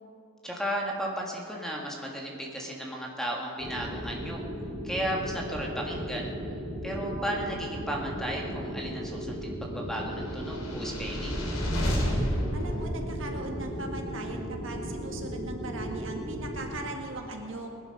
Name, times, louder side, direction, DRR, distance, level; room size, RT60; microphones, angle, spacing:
voice 1, 0.4-4.4 4.8-6.3 6.8-11.4, equal, ahead, -1 dB, 1.7 m, -34 dB
sound 1, 3.6-16.7, equal, 15° right, 4.1 m, -36 dB
sound 2, 10.3-13.7, equal, 75° left, 2.8 m, -31 dB
voice 2, 12.5-17.7, right 2 dB, 60° right, 2 dB, 1.8 m, -39 dB
20.0 x 11.0 x 5.3 m, 2.9 s
head